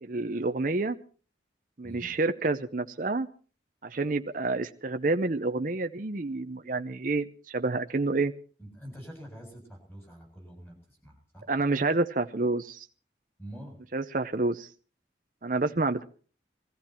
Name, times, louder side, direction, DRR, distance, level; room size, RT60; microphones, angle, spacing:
voice 1, 0.0-1.0 1.8-3.3 3.8-7.2 7.5-8.3 11.5-12.8 13.9-14.7 15.4-16.0, right 3 dB, 45° right, 7 dB, 0.7 m, -28 dB
voice 2, 8.6-11.5 13.4-13.8, equal, 10° left, 1 dB, 7.5 m, -46 dB
21.0 x 14.5 x 4.4 m, 0.40 s
head